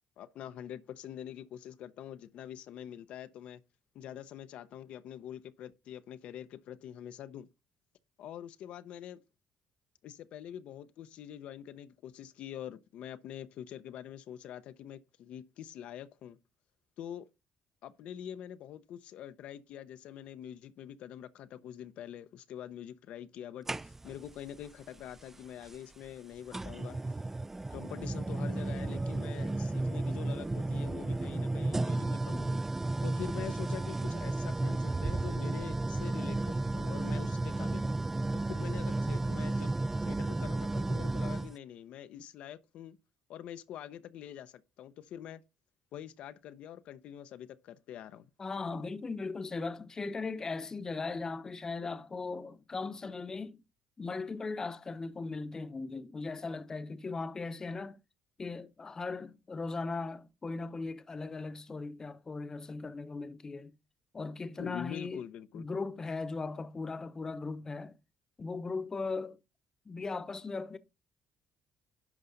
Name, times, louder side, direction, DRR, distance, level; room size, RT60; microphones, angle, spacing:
voice 1, 0.2-3.6 3.9-7.5 8.2-9.2 10.0-16.4 17.0-17.3 17.8-27.0 27.7-32.6 33.0-37.9 38.3-39.7 40.0-43.0 43.3-45.4 45.9-48.3 64.6-65.7, left 10 dB, 75° left, 0.6 m, -45 dB
sound 1, 23.7-24.3 25.6-25.7 26.5-41.5, right 2 dB, 15° right, 0.4 m, -33 dB
voice 2, 48.4-53.6 54.0-58.0 58.4-63.7 64.1-65.2 65.5-68.0 68.4-69.4 69.9-70.8, left 3 dB, 30° left, 0.8 m, -38 dB
10.5 x 5.5 x 3.9 m
cardioid pair, 85°, 2 cm